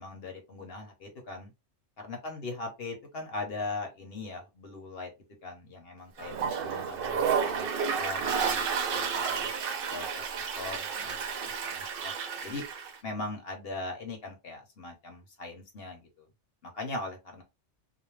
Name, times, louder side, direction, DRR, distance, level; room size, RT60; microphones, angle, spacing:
voice 1, 0.0-1.5 2.0-5.1 5.4-7.7 8.0-9.5 9.9-12.1 12.4-12.6 13.0-16.2 16.6-17.4, left 3 dB, 55° left, 3 dB, 1.0 m, -40 dB
Toilet flush, 6.2-12.9, right 6 dB, 60° right, 0.6 m, -31 dB
2.5 x 2.1 x 3.1 m, 0.24 s
omnidirectional pair, 1.3 m